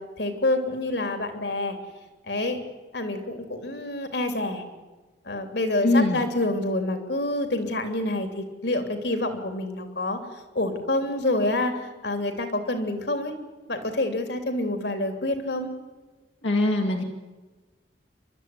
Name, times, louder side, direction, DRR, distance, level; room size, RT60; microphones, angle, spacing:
voice 1, 0.0-1.8 2.2-2.6 2.9-4.6 5.2-10.2 10.5-13.3 13.7-15.7, left 2 dB, 65° left, 7 dB, 3.1 m, -27 dB
voice 2, 5.8-6.2 16.4-17.0, left 2 dB, 85° left, 0 dB, 2.6 m, -22 dB
29.5 x 12.5 x 9.7 m, 1.2 s
head